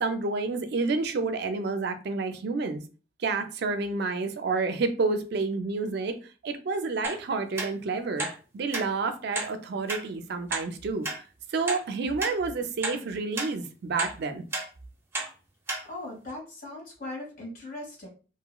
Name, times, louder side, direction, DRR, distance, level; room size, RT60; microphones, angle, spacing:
voice 1, 0.0-2.8 3.2-6.2 6.4-8.3 8.5-11.1 11.5-14.4, right 4 dB, 60° right, 0.4 m, -29 dB
sound 1, 7.0-7.2 7.6-7.7 8.2-8.4 8.7-8.9 9.3-9.5 9.9-10.0 10.5-10.6 11.0-11.2 11.7-11.8 12.2-12.4 12.8-13.0 13.4-13.5 14.0-14.1 14.5-14.7 15.1-15.3 15.7-15.8 16.3-16.4, right 2 dB, 15° right, 0.7 m, -31 dB
voice 2, 15.9-18.1, left 2 dB, 50° left, 1.5 m, -39 dB
2.9 x 2.7 x 2.3 m
head